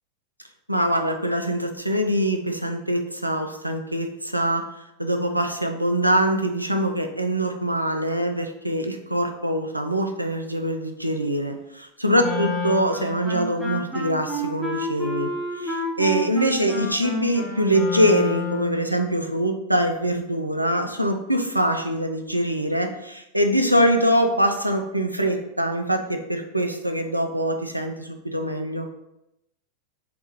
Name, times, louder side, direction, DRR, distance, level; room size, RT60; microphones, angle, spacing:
voice 1, 0.7-4.6 5.0-28.9, equal, 90° right, 4 dB, 0.3 m, -23 dB
Wind instrument woodwind instrument, 12.2-18.8, left 2 dB, 5° right, 0.9 m, -29 dB
2.8 x 2.3 x 3.3 m, 0.86 s
figure-of-eight pair, 90°, 0 cm